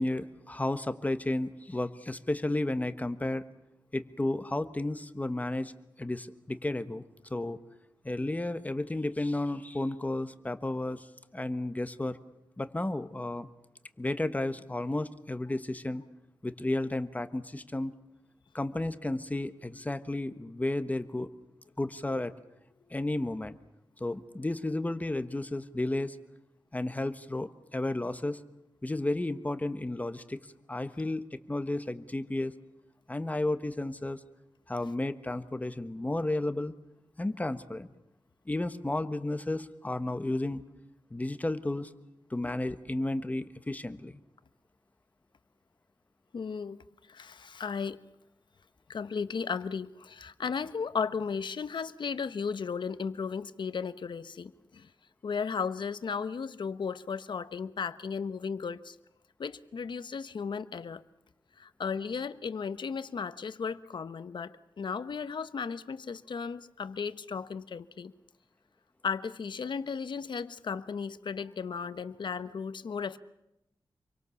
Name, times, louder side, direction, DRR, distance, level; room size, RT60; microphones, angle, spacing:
voice 1, 0.0-3.4 3.9-5.7 6.0-7.0 7.3-7.6 8.0-11.1 11.3-12.2 12.6-13.5 14.0-16.0 16.4-17.9 18.5-21.3 21.8-22.3 22.9-23.5 24.0-26.2 26.7-28.4 28.8-30.4 30.7-32.5 33.1-34.2 34.7-36.7 37.2-37.9 38.5-40.6 41.1-41.9 42.3-44.1, left 2 dB, 20° left, 11 dB, 1.3 m, -32 dB
voice 2, 46.3-46.8 47.1-48.0 48.9-54.9 55.2-58.9 59.4-61.0 61.6-68.1 69.0-73.2, left 5 dB, 75° left, 13 dB, 1.1 m, -35 dB
28.0 x 23.5 x 7.1 m, 0.88 s
wide cardioid pair, 110°, 8 cm